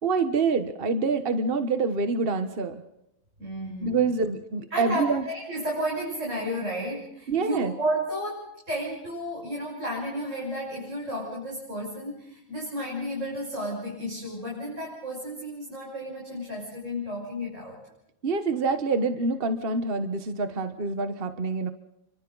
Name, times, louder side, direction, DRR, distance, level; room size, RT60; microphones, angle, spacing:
voice 1, 0.0-2.8 3.8-5.2 7.3-7.7 18.2-21.7, right 4 dB, 45° right, 9 dB, 1.5 m, -26 dB
voice 2, 3.4-4.0 4.7-17.8, equal, 65° right, -4 dB, 6.8 m, -32 dB
30.0 x 25.0 x 4.0 m, 0.82 s
omnidirectional pair, 1.4 m